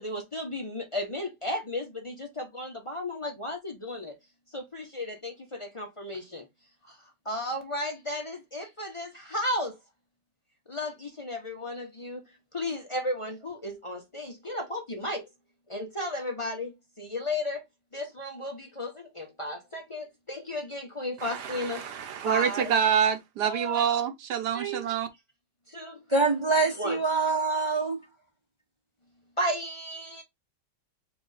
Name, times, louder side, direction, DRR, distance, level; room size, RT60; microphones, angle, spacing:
voice 1, 0.0-4.2 4.5-6.5 6.9-7.0 7.2-9.8 10.7-12.2 12.5-15.3 15.7-17.6 17.9-22.0 22.2-22.7 23.4-23.9 24.5-24.9 25.7-26.0 26.8-27.0 29.4-30.2, left 1 dB, 40° left, 0.4 m, -34 dB
voice 2, 21.2-25.1, right 8 dB, 70° right, 1.3 m, -27 dB
voice 3, 26.1-28.0, right 3 dB, 30° right, 0.5 m, -25 dB
4.6 x 2.4 x 3.9 m
omnidirectional pair, 1.9 m